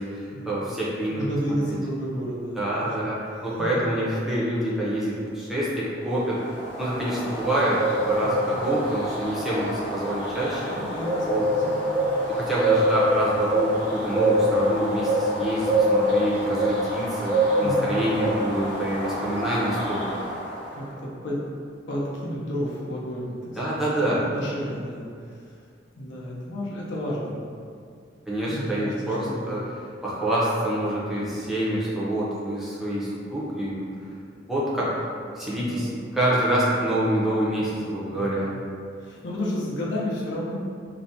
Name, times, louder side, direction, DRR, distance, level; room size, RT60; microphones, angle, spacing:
voice 1, 0.0-1.2 1.7-1.8 2.6-6.4 6.8-7.8 8.1-10.7 11.3-11.5 12.3-20.0 23.6-24.2 28.3-29.6 30.0-33.7 34.4-38.5, right 1 dB, ahead, -8 dB, 0.4 m, -26 dB
voice 2, 1.1-2.9 3.5-3.7 8.2-8.5 10.7-12.2 17.6-18.0 20.7-21.4 21.9-25.5 26.0-27.3 28.5-29.5 35.5-35.9 38.1-38.4 39.0-40.5, equal, 70° left, -5 dB, 0.5 m, -32 dB
sound 1, 6.1-20.7, right 1 dB, 30° left, 0.9 m, -25 dB
2.4 x 2.1 x 2.6 m, 2.3 s
head